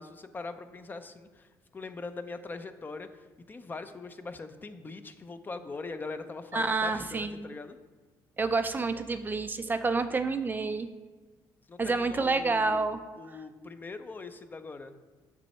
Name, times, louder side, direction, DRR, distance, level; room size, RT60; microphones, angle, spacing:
voice 1, 0.0-7.8 11.7-12.9 13.2-15.0, left 3 dB, 25° left, 9 dB, 0.5 m, -42 dB
voice 2, 6.5-7.5 8.4-10.9 11.8-13.0, right 3 dB, 25° right, 9 dB, 0.4 m, -28 dB
6.9 x 6.0 x 4.3 m, 1.3 s
cardioid pair, 95°, 8 cm